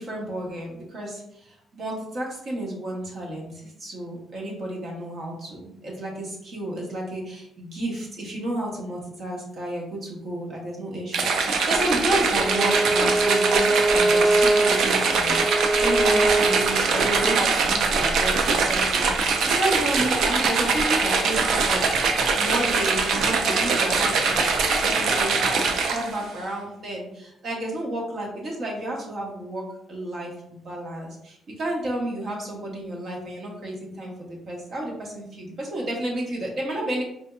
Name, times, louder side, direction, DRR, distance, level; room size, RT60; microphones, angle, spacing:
voice 1, 0.0-15.4 15.8-21.8 22.3-24.5 24.8-37.0, right 1 dB, 55° right, -2 dB, 1.1 m, -31 dB
sound 1, 11.1-26.2, right 4 dB, 75° right, 0.5 m, -22 dB
Bowed string instrument, 12.4-17.4, right 2 dB, 5° left, 0.5 m, -23 dB
4.3 x 2.7 x 2.3 m, 0.76 s
cardioid pair, 90°, 0 cm